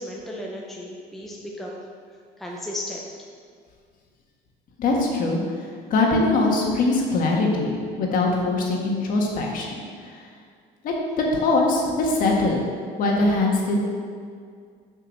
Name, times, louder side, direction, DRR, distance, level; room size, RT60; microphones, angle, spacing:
voice 1, 0.0-1.8 2.4-3.1, left 1 dB, ahead, -2 dB, 0.6 m, -34 dB
voice 2, 4.8-5.4 5.9-9.8 10.8-10.9 11.3-12.6 13.0-13.8, left 2 dB, 50° left, -1 dB, 1.6 m, -22 dB
7.3 x 5.5 x 6.4 m, 2.1 s
cardioid pair, 175°, 18 cm